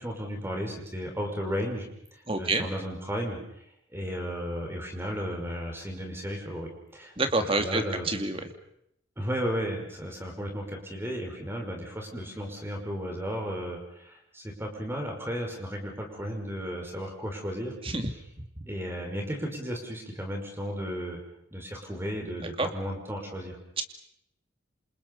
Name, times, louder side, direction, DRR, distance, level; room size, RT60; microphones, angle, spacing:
voice 1, 0.0-3.4 3.9-7.1 7.4-8.1 9.2-17.7 18.7-21.2 21.5-23.6, equal, 10° right, 2 dB, 5.7 m, -34 dB
voice 2, 2.3-2.7 7.2-8.5 17.8-18.1 22.4-22.7, right 2 dB, 25° right, 6 dB, 2.5 m, -28 dB
28.5 x 27.5 x 5.6 m, 0.74 s
head